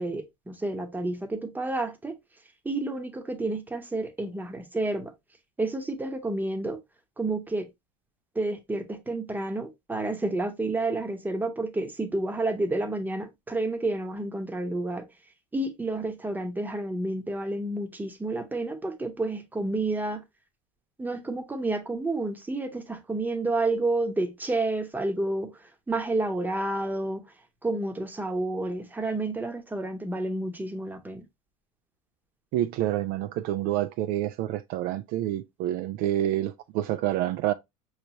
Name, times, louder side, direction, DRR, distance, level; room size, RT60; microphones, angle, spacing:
voice 1, 0.0-2.1 2.6-5.1 5.6-6.8 7.2-7.7 8.3-15.1 15.5-20.2 21.0-27.2 27.6-31.2, right 2 dB, 10° right, 0.9 m, -30 dB
voice 2, 32.5-37.5, right 13 dB, 55° right, 0.4 m, -28 dB
5.1 x 3.2 x 2.8 m
hypercardioid pair, 95°, 19 cm